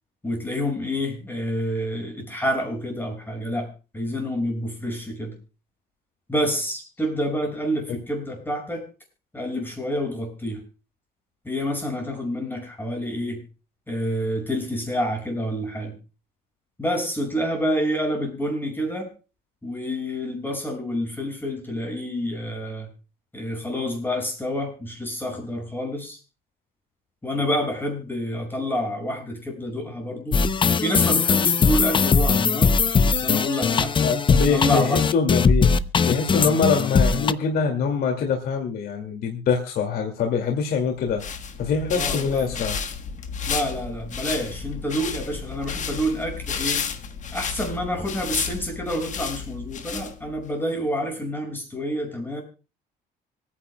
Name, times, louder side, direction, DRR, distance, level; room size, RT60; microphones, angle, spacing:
voice 1, 0.2-5.3 6.3-8.8 9.3-10.6 11.4-13.4 13.9-16.0 16.8-19.1 19.6-22.9 23.3-26.2 27.2-30.4 30.8-32.7 33.0-33.9 34.5-35.0 41.9-42.6 43.5-46.9 47.3-52.4, equal, 10° left, 2 dB, 6.0 m, -28 dB
sound 1, 30.3-37.3, left 5 dB, 30° left, 0.6 m, -20 dB
voice 2, 34.0-35.7 36.1-41.2 41.6-42.8, left 5 dB, 65° left, 3 dB, 2.2 m, -24 dB
sound 2, 41.0-50.5, left 6 dB, 45° left, 1.4 m, -32 dB
25.5 x 9.9 x 2.2 m, 0.32 s
cardioid pair, 110°, 17 cm